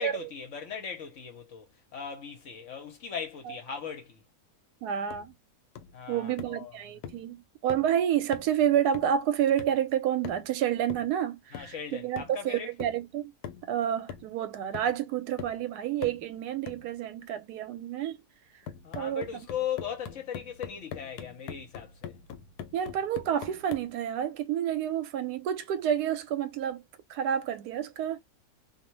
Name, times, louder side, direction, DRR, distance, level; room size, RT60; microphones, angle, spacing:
voice 1, 0.0-4.2 5.9-6.8 11.5-12.7 18.8-22.2, left 7 dB, 60° left, 1.0 m, -38 dB
voice 2, 4.8-5.3 6.1-13.3 13.7-18.2 18.9-19.5 22.7-26.8 27.1-28.2, right 9 dB, 85° right, 1.1 m, -29 dB
sound 1, 5.1-5.3 5.8-6.0 6.4-6.6 7.0-7.3 7.7-8.0 8.3-8.6 8.9-9.2 9.6-9.8 10.2-10.6 10.9-11.2 11.5-11.8 12.2-12.4 12.8-13.1 13.4-13.7 14.1-14.5 14.7-15.0 15.4-15.6 16.0-16.3 16.7-16.9 18.7-23.9, left 8 dB, 90° left, 1.2 m, -43 dB
2.6 x 2.1 x 2.9 m
omnidirectional pair, 1.6 m